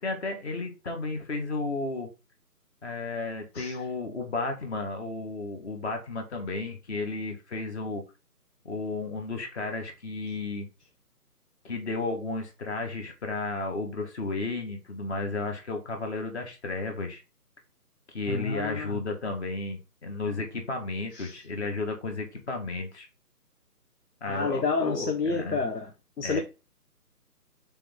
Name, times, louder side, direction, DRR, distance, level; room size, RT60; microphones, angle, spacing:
voice 1, 0.0-2.1 2.8-8.0 8.6-10.7 11.6-17.2 18.1-23.1 24.2-25.6 26.2-26.4, left 3 dB, 45° left, 2.0 m, -33 dB
voice 2, 18.3-19.0 21.1-21.4 24.3-25.9 26.2-26.4, left 4 dB, 85° left, 1.2 m, -29 dB
6.9 x 3.6 x 3.8 m
figure-of-eight pair, 155°, 47 cm